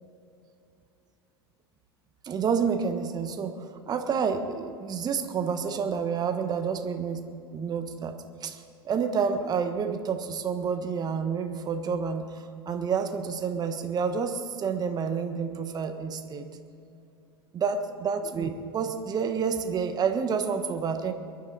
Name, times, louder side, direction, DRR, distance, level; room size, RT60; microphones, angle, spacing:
voice 1, 2.2-3.5 3.9-7.2 7.5-16.5 17.5-21.1, right 6 dB, 30° right, 7 dB, 1.3 m, -29 dB
23.0 x 10.5 x 4.2 m, 2.7 s
hypercardioid pair, 80°, 13 cm